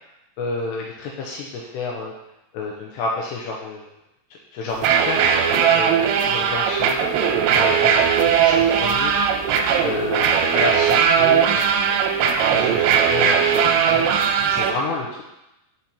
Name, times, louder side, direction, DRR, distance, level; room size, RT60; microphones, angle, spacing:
voice 1, 0.4-2.1 2.5-3.9 4.3-5.2 5.7-7.1 7.5-9.1 9.5-12.0 12.4-13.6 13.8-14.1 14.5-15.2, left 3 dB, 80° left, -1 dB, 2.6 m, -30 dB
sound 1, 4.7-14.7, right 7 dB, 80° right, 2.6 m, -18 dB
6.0 x 5.1 x 4.2 m, 0.91 s
omnidirectional pair, 5.2 m